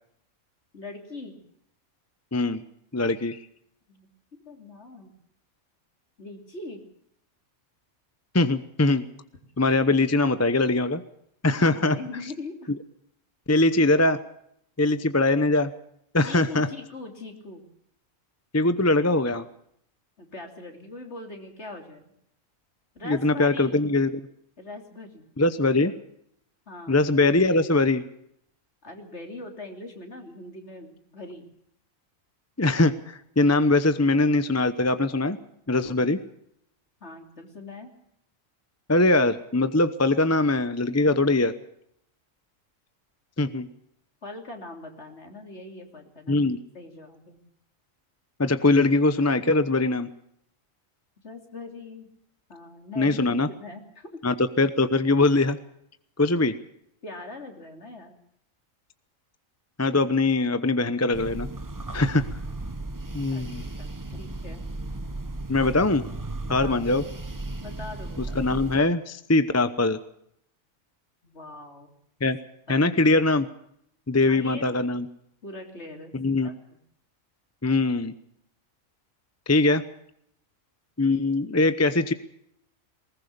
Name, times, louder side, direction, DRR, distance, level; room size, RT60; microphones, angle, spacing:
voice 1, 0.7-1.4 3.9-4.1 4.4-5.1 6.2-6.8 11.7-12.7 16.2-17.6 20.2-22.1 22.9-23.7 24.6-25.3 26.7-27.0 28.8-31.4 37.0-37.9 44.2-46.4 46.7-47.4 51.2-52.1 52.5-54.2 57.0-58.2 63.3-64.6 66.4-67.0 67.6-68.4 71.2-71.9 72.7-72.8 74.2-74.8 75.4-76.5, left 2 dB, 55° left, 4 dB, 3.4 m, -41 dB
voice 2, 2.3-2.6 2.9-3.4 8.3-9.1 9.6-11.0 11.4-12.0 13.5-14.2 14.8-15.7 16.1-16.7 18.5-19.5 23.0-24.2 25.4-25.9 26.9-28.0 32.6-35.4 35.7-36.2 38.9-41.5 43.4-43.7 46.3-46.6 48.4-50.1 53.0-53.5 54.2-55.6 56.2-56.6 59.8-61.5 61.9-62.2 63.1-63.6 65.5-66.0 66.5-67.0 68.3-70.0 72.2-72.4 72.7-73.5 74.1-75.1 76.1-76.5 77.6-78.1 79.5-79.8 81.0-82.1, left 2 dB, 15° left, 12 dB, 0.7 m, -22 dB
sound 1, 61.1-68.8, right 2 dB, 15° right, 0.8 m, -35 dB
20.5 x 19.0 x 6.8 m, 0.72 s
omnidirectional pair, 1.4 m